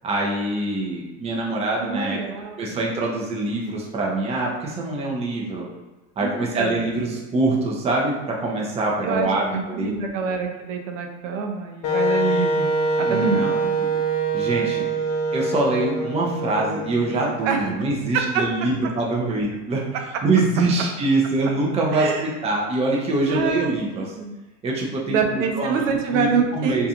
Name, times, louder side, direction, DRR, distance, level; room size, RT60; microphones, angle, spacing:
voice 1, 0.0-2.2 2.6-5.6 6.2-9.9 13.1-13.7 14.3-14.9 15.3-24.1 24.6-25.8 26.1-26.9, right 2 dB, 15° right, -2 dB, 0.5 m, -24 dB
voice 2, 1.8-2.8 6.2-6.9 9.0-13.5 17.4-17.6 18.1-18.4 21.9-22.3 23.3-24.4 25.1-26.9, right 5 dB, 80° right, 3 dB, 0.6 m, -26 dB
Wind instrument woodwind instrument, 11.8-17.7, right 2 dB, 45° left, 0.6 m, -24 dB
2.5 x 2.3 x 2.8 m, 1.1 s
hypercardioid pair, 105°, 38 cm